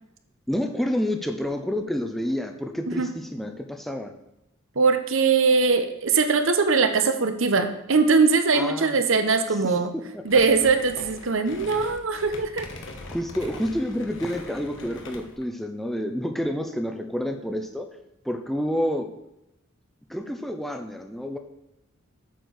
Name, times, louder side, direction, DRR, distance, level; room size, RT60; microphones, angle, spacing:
voice 1, 0.5-4.1 8.5-8.9 9.9-10.0 13.1-17.9 18.2-19.1 20.1-21.4, equal, ahead, 4 dB, 0.6 m, -29 dB
voice 2, 4.7-9.9 10.2-12.7, right 4 dB, 65° right, 8 dB, 0.9 m, -21 dB
sound 1, 10.3-15.5, left 2 dB, 60° left, 1.2 m, -41 dB
8.1 x 4.5 x 6.4 m, 0.86 s
head